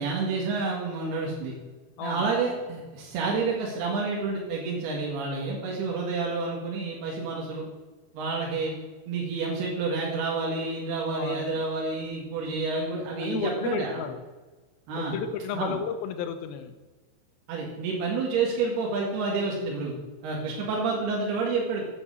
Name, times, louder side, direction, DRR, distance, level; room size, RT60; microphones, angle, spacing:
voice 1, 0.0-1.5 2.0-7.7 8.2-8.7 9.1-14.0 14.9-15.1 15.5-15.8 17.5-19.9 20.2-21.8, right 4 dB, 80° right, -3 dB, 3.7 m, -29 dB
voice 2, 2.0-2.3 11.1-11.6 13.2-14.2 14.9-16.7, left 6 dB, 75° left, 8 dB, 2.5 m, -33 dB
9.0 x 8.0 x 7.4 m, 1.3 s
omnidirectional pair, 4.5 m